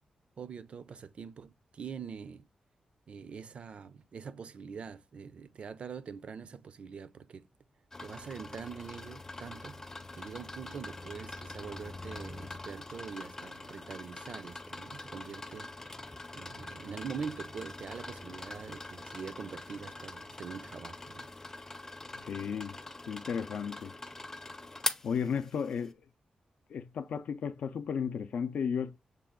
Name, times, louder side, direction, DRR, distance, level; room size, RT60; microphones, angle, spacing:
voice 1, 0.4-2.5 3.1-7.5 8.0-16.1 16.3-21.3, right 6 dB, 55° right, 0.4 m, -44 dB
sound 1, 7.9-25.9, left 2 dB, 20° left, 0.5 m, -43 dB
voice 2, 22.1-22.8 23.1-23.9 25.0-26.0 26.7-29.0, left 7 dB, 75° left, 0.4 m, -34 dB
6.6 x 2.3 x 3.6 m
wide cardioid pair, 110°, 2 cm